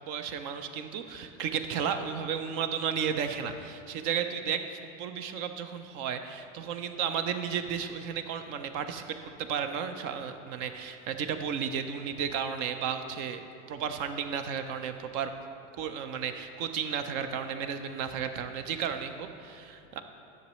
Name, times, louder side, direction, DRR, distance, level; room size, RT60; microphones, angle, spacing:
voice 1, 0.1-13.4 13.7-15.3 15.8-20.0, right 7 dB, 50° right, 8 dB, 0.6 m, -33 dB
10.5 x 6.3 x 3.1 m, 2.8 s
hypercardioid pair, 90°, 39 cm